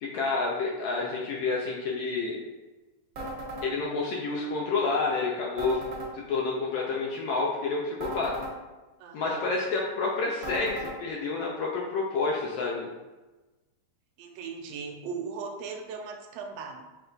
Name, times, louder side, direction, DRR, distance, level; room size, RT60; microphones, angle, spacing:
voice 1, 0.0-2.4 3.6-5.8 6.3-8.3 9.1-12.9, left 3 dB, 80° left, -2 dB, 1.4 m, -29 dB
sound 1, 3.2-3.7 5.6-6.1 8.0-8.5 10.4-11.0, right 1 dB, 55° right, 1.5 m, -36 dB
voice 2, 9.0-9.5 14.2-16.8, right 5 dB, 80° right, 3 dB, 1.6 m, -38 dB
6.1 x 2.2 x 3.9 m, 1.1 s
omnidirectional pair, 3.4 m